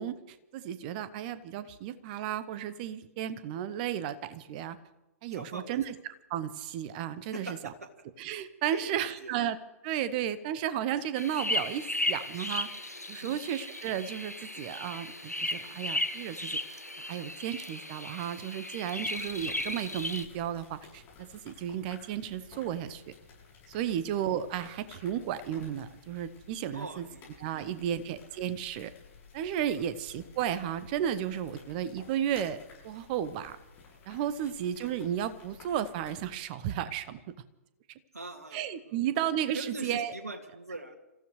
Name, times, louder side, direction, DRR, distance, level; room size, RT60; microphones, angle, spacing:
voice 1, 0.0-4.8 5.2-5.9 6.3-7.6 8.2-9.6 9.8-12.7 13.1-16.6 17.0-23.1 23.7-27.1 27.4-28.9 29.3-32.6 32.8-33.6 34.1-37.2 38.5-40.1, right 10 dB, 35° right, 14 dB, 0.9 m, -33 dB
voice 2, 5.3-5.8 7.3-7.9 8.7-9.4 13.2-13.4 19.0-19.1 23.8-24.0 26.7-28.2 29.7-29.9 31.5-31.6 34.4-34.5 38.1-39.2 39.5-41.0, right 2 dB, 75° right, 3 dB, 2.2 m, -43 dB
sound 1, 11.2-20.3, left 1 dB, 90° left, 1.1 m, -35 dB
sound 2, 19.1-36.4, left 5 dB, 25° left, 7.2 m, -55 dB
29.0 x 15.0 x 3.2 m, 0.99 s
figure-of-eight pair, 115°, 8 cm